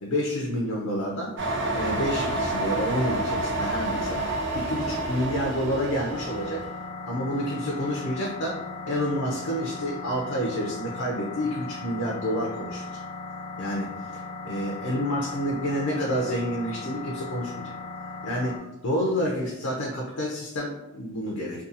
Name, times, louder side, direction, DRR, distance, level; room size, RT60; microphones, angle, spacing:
voice 1, 0.0-1.3 1.7-4.2 4.5-6.6 7.1-12.8 13.6-17.7 18.2-21.7, equal, 85° left, -1 dB, 0.5 m, -29 dB
sound 1, 1.4-6.7, right 2 dB, 55° right, 0.5 m, -29 dB
sound 2, 6.1-18.6, left 3 dB, 20° left, 0.3 m, -38 dB
2.7 x 2.3 x 2.5 m, 0.93 s
head